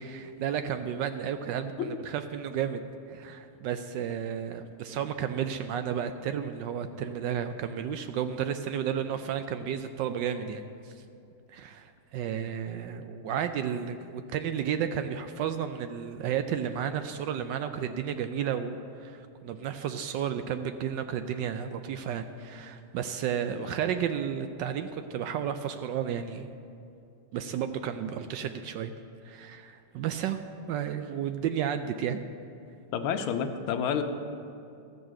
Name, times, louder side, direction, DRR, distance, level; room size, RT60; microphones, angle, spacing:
voice 1, 0.0-10.9 11.5-26.5 27.3-28.9 29.2-30.4 30.7-32.2, right 8 dB, 75° right, 9 dB, 1.1 m, -32 dB
voice 2, 32.9-34.0, left 8 dB, 80° left, 6 dB, 1.6 m, -29 dB
13.5 x 6.4 x 7.5 m, 2.5 s
omnidirectional pair, 2.3 m